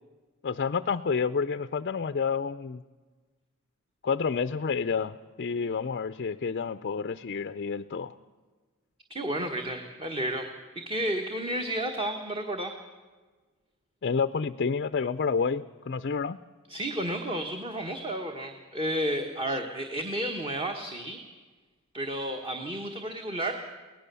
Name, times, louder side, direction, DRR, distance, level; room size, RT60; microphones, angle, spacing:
voice 1, 0.4-2.8 4.0-8.1 14.0-16.4 19.5-19.6, left 5 dB, 45° left, 11 dB, 0.5 m, -29 dB
voice 2, 9.1-10.5 10.7-12.7 16.7-21.2 21.9-23.5, right 1 dB, 25° right, 4 dB, 1.4 m, -32 dB
23.5 x 18.0 x 6.9 m, 1.3 s
head